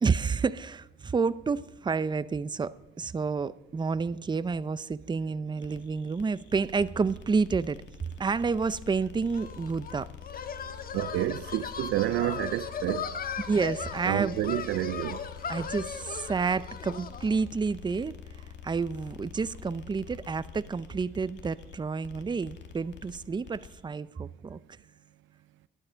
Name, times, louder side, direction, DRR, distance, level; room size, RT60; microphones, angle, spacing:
voice 1, 0.0-7.8 8.2-10.1 13.5-14.4 15.5-18.2 18.6-24.6, right 4 dB, 20° right, 0.6 m, -29 dB
sound 1, 5.6-23.8, left 7 dB, 65° left, 2.3 m, -47 dB
sound 2, 9.3-17.4, left 7 dB, 50° left, 1.4 m, -38 dB
voice 2, 10.9-13.1 14.1-15.2, right 14 dB, 80° right, 0.5 m, -29 dB
12.5 x 12.0 x 6.2 m
cardioid pair, 90°, 20 cm